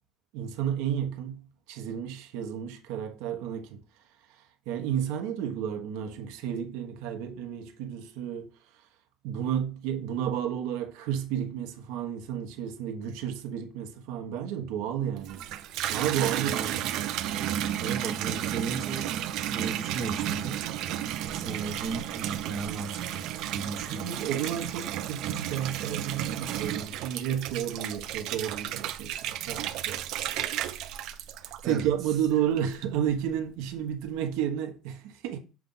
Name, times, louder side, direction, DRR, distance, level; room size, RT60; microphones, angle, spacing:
voice 1, 0.3-1.4 1.7-3.8 4.7-8.5 9.2-15.4 15.9-16.6 17.0-17.2 23.8-30.2 31.6-35.4, right 9 dB, 75° right, 1.0 m, -32 dB
Water tap faucet / Bathtub (filling or washing), 15.2-32.1 32.6-33.1, right 11 dB, 60° right, 0.6 m, -33 dB
voice 2, 16.4-16.8 17.8-19.1 19.5-20.6 21.3-24.2 31.6-32.2, right 4 dB, 35° right, 0.9 m, -36 dB
7.0 x 2.4 x 5.5 m
cardioid pair, 160°, 0 cm